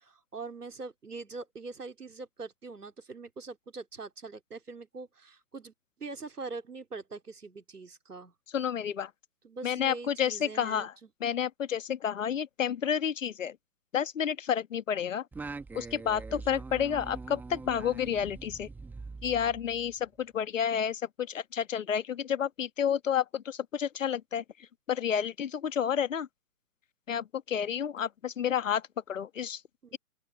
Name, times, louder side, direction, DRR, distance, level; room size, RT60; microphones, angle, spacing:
voice 1, 0.0-5.7 6.0-8.3 9.4-11.1 29.8-30.0, right 3 dB, 80° right, 3.6 m, -43 dB
voice 2, 8.5-9.1 9.6-10.9 11.2-13.6 13.9-15.3 15.7-18.7 19.2-24.4 24.9-26.3 27.1-29.6, left 8 dB, 55° left, 1.5 m, -30 dB
Singing, 15.3-20.1, right 4 dB, 5° right, 1.6 m, -43 dB
open air
figure-of-eight pair, 135°, 46 cm